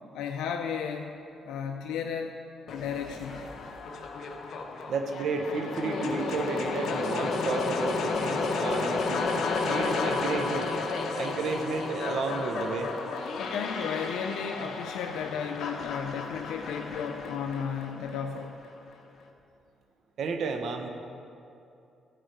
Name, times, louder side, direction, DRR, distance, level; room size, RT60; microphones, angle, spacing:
voice 1, 0.1-1.2 1.4-2.3 2.7-3.4 13.4-18.6, left 7 dB, 85° left, 3 dB, 0.5 m, -34 dB
sound 1, 2.7-18.7, left 4 dB, 65° left, 1.1 m, -32 dB
voice 2, 4.9-9.3 9.6-10.7 11.2-12.9 20.2-20.9, right 4 dB, 65° right, 5 dB, 1.0 m, -32 dB
13.0 x 4.7 x 8.0 m, 2.6 s
cardioid pair, 90°, 0 cm